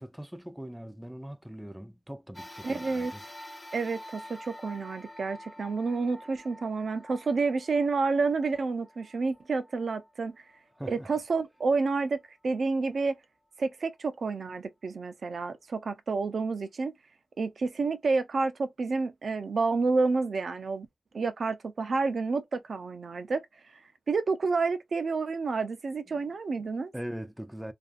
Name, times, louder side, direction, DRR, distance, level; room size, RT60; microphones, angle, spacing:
voice 1, 0.0-3.2 10.8-11.1 26.1-26.2 26.9-27.7, equal, 10° right, 0.4 m, -41 dB
sound 1, 2.3-11.0 11.6-11.7 12.8-12.9, left 1 dB, 35° left, 0.7 m, -48 dB
voice 2, 2.6-3.1 3.7-10.4 10.9-13.2 13.6-16.9 17.4-20.9 21.1-23.5 23.7-23.8 24.1-26.9, right 4 dB, 70° right, 0.4 m, -29 dB
2.5 x 2.3 x 2.3 m
cardioid pair, 45°, 0 cm